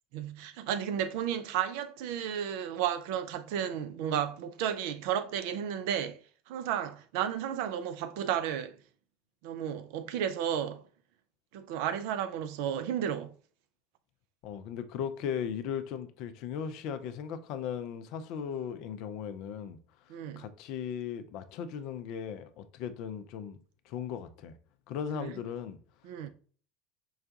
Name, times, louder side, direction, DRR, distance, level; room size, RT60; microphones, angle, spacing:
voice 1, 0.1-6.2 6.5-8.8 9.4-10.9 11.5-13.3 20.1-20.5 25.1-25.3 26.0-26.3, right 9 dB, 65° right, 0.4 m, -33 dB
voice 2, 14.4-19.8 20.4-23.6 23.9-24.5 24.9-25.8, left 8 dB, 60° left, 0.4 m, -37 dB
4.7 x 2.2 x 2.7 m
hypercardioid pair, 75°, 0 cm